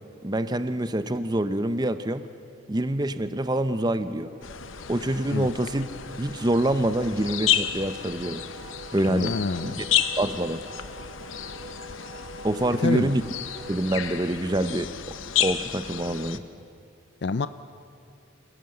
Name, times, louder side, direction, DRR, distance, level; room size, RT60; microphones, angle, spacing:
voice 1, 0.2-2.2 2.7-4.3 4.9-5.9 6.2-8.4 8.9-9.3 9.6-9.8 10.2-10.6 12.4-13.2 13.7-16.4, right 1 dB, 20° right, 11 dB, 0.7 m, -26 dB
Wind instrument woodwind instrument, 3.0-13.8, right 1 dB, 40° right, 1.7 m, -46 dB
sound 1, 4.4-16.4, left 10 dB, 75° left, 0.8 m, -31 dB
voice 2, 9.1-9.8 12.8-13.1 17.2-17.5, left 4 dB, 55° left, 13 dB, 0.5 m, -27 dB
27.0 x 17.5 x 7.8 m, 2.5 s
head